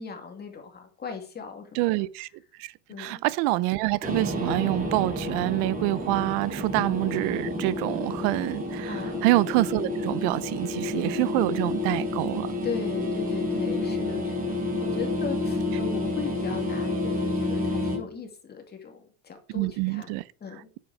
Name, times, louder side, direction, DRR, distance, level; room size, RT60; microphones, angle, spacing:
voice 1, 0.0-1.8 2.9-3.2 8.9-9.3 12.6-20.6, left 6 dB, 20° left, 2.4 m, -38 dB
voice 2, 1.7-2.3 2.6-2.7 3.0-12.5 19.5-20.2, right 19 dB, 60° right, 0.8 m, -26 dB
sound 1, 4.0-18.0, left 2 dB, 20° right, 3.3 m, -29 dB
9.4 x 7.7 x 4.8 m
cardioid pair, 160°, 44 cm